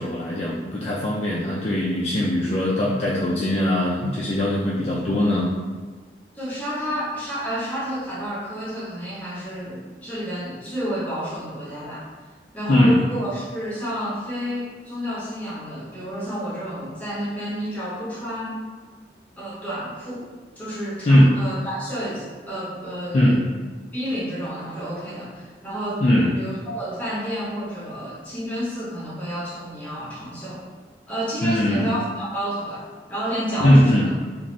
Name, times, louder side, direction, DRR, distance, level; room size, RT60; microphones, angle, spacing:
voice 1, 0.0-5.5 12.7-13.0 21.1-21.3 23.1-23.4 26.0-26.3 31.4-31.9 33.6-34.1, left 1 dB, 35° left, -7 dB, 0.3 m, -20 dB
voice 2, 6.3-12.1 12.5-18.6 19.4-20.3 20.6-23.2 23.9-26.0 26.4-30.6 31.1-32.8 33.1-34.1, equal, 10° left, -9 dB, 0.9 m, -30 dB
2.6 x 2.5 x 3.1 m, 1.4 s
head